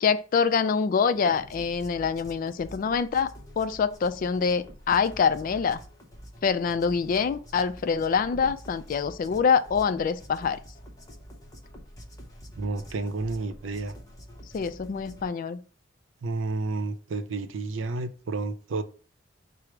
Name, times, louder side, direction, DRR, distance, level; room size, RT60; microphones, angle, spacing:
voice 1, 0.0-3.3 3.6-5.8 6.4-10.6 14.5-15.6, left 6 dB, 45° left, 0.3 m, -25 dB
sound 1, 1.1-15.3, equal, 20° left, 0.7 m, -47 dB
voice 2, 12.6-13.9 16.2-18.8, right 3 dB, 80° right, 0.5 m, -31 dB
4.8 x 2.0 x 4.5 m
head